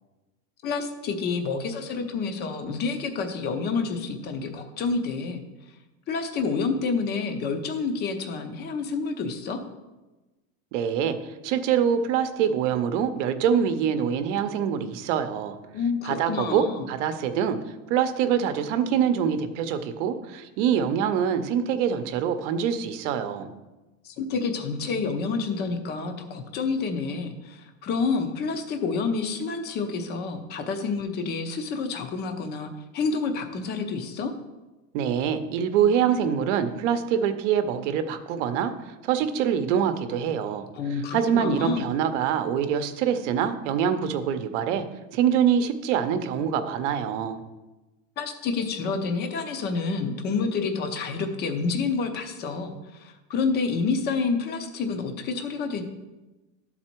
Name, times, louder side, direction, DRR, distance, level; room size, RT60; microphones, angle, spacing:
voice 1, 0.6-5.4 6.1-9.6 15.7-16.9 24.0-34.3 40.7-41.9 48.2-55.8, left 4 dB, 25° left, 6 dB, 0.6 m, -28 dB
voice 2, 10.7-11.2 11.4-15.6 16.0-17.6 17.9-23.5 34.9-38.7 39.0-40.7 41.1-44.8 45.1-47.4, right 8 dB, 60° right, 9 dB, 0.8 m, -25 dB
12.0 x 4.1 x 4.5 m, 1.1 s
supercardioid pair, 155°, 41 cm